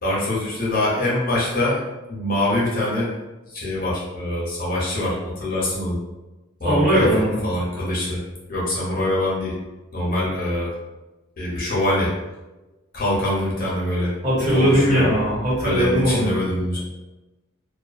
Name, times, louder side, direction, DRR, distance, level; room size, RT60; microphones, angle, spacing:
voice 1, 0.0-1.8 2.1-3.1 3.5-6.0 6.6-8.2 8.5-9.5 9.9-10.7 11.4-12.1 12.9-14.1 14.4-15.0 15.6-16.8, left 1 dB, 40° left, -6 dB, 0.7 m, -24 dB
voice 2, 6.6-7.4 14.2-16.3, equal, 35° right, -8 dB, 1.2 m, -19 dB
2.3 x 2.3 x 2.4 m, 1.1 s
head